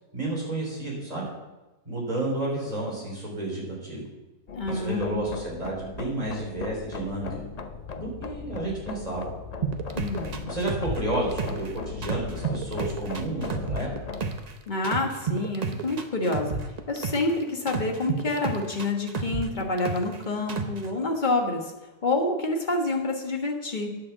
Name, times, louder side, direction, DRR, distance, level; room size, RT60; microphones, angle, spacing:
voice 1, 0.1-1.3 1.9-4.0 4.7-7.4 7.9-9.3 10.5-13.9, right 1 dB, 25° right, -3 dB, 3.9 m, -31 dB
sound 1, 4.5-14.3, left 5 dB, 85° left, 0.3 m, -37 dB
voice 2, 4.5-5.2 10.0-10.5 14.7-21.7 22.0-23.9, left 2 dB, 30° left, 2 dB, 1.5 m, -28 dB
sound 2, 9.6-11.7 12.0-14.5 14.8-17.3 17.7-20.2 20.5-20.9, right 6 dB, 45° right, 0.5 m, -30 dB
9.9 x 6.7 x 7.3 m, 1.1 s
omnidirectional pair, 1.7 m